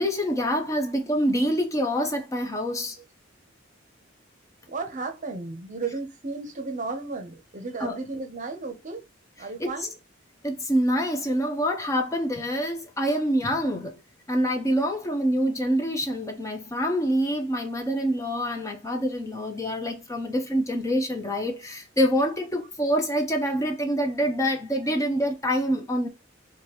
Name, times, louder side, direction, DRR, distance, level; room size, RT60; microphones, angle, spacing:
voice 1, 0.0-3.0 7.8-8.0 9.6-9.9 10.4-13.9 14.3-26.1, equal, 15° left, 0.5 m, -26 dB
voice 2, 4.7-9.0 9.4-9.9, right 3 dB, 40° right, 0.7 m, -34 dB
5.0 x 2.3 x 2.9 m
head